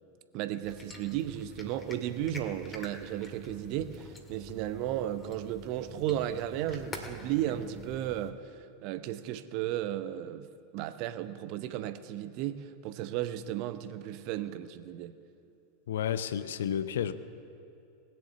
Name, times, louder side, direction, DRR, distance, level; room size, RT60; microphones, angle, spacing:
voice 1, 0.3-15.1, right 12 dB, 45° right, 12 dB, 0.7 m, -34 dB
sound 1, 0.6-8.3, left 2 dB, 20° left, 1.8 m, -47 dB
voice 2, 15.9-17.1, left 9 dB, 65° left, 13 dB, 0.6 m, -31 dB
19.5 x 7.8 x 6.8 m, 2.6 s
figure-of-eight pair, 85°, 0 cm